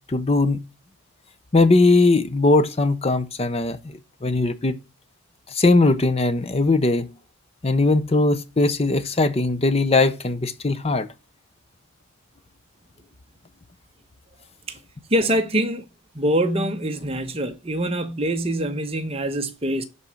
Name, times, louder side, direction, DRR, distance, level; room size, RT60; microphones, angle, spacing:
voice 1, 0.1-0.6 1.5-4.8 5.5-7.1 7.6-11.1, left 2 dB, 30° left, 0.6 m, -20 dB
voice 2, 15.1-15.8 16.1-19.8, right 1 dB, 25° right, 0.9 m, -24 dB
10.5 x 4.2 x 6.2 m
head